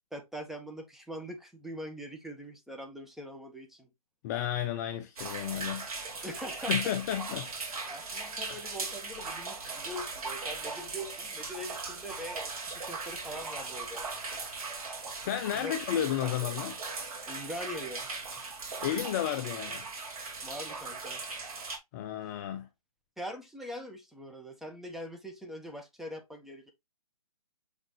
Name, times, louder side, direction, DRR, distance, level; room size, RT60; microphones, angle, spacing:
voice 1, 0.1-3.9 6.2-6.9 7.9-14.1 15.5-15.7 17.3-18.1 20.4-21.2 23.2-26.7, equal, ahead, 1.3 m, -42 dB
voice 2, 4.2-5.9 6.1-6.3 6.7-7.5 8.5-8.6 15.2-16.8 18.8-19.9 21.9-22.7, left 11 dB, 25° left, 0.6 m, -32 dB
sound 1, 5.2-21.8, right 3 dB, 65° right, 3.3 m, -38 dB
7.1 x 5.0 x 3.0 m
hypercardioid pair, 140°, 20 cm